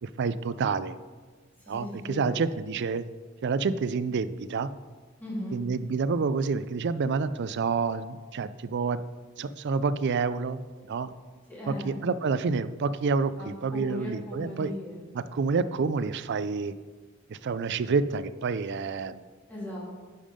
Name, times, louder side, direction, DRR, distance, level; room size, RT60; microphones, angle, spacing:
voice 1, 0.0-1.0 1.7-3.0 3.4-4.7 5.5-9.0 9.4-11.1 11.7-14.7 15.1-16.7 17.3-19.2, right 4 dB, 55° right, 14 dB, 0.4 m, -28 dB
voice 2, 1.6-2.5 5.2-5.6 11.5-12.0 13.4-15.1 19.5-19.9, left 1 dB, 10° left, -6 dB, 2.9 m, -38 dB
10.5 x 5.5 x 5.0 m, 1.4 s
head